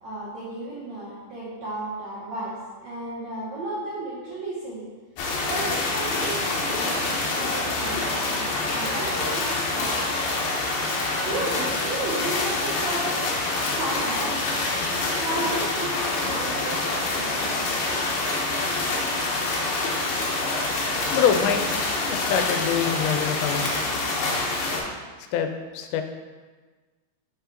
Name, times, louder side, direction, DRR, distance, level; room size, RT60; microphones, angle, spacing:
voice 1, 0.0-4.9 5.4-10.0 11.0-13.2 13.7-14.4 14.8-17.8, right 2 dB, 75° right, -8 dB, 1.6 m, -34 dB
sound 1, 5.2-24.8, left 2 dB, 70° left, 2.7 m, -26 dB
voice 2, 21.1-21.7 22.1-23.9 25.3-25.5 25.7-26.0, left 8 dB, 90° left, 7 dB, 2.8 m, -24 dB
6.1 x 5.5 x 3.8 m, 1.4 s
omnidirectional pair, 4.9 m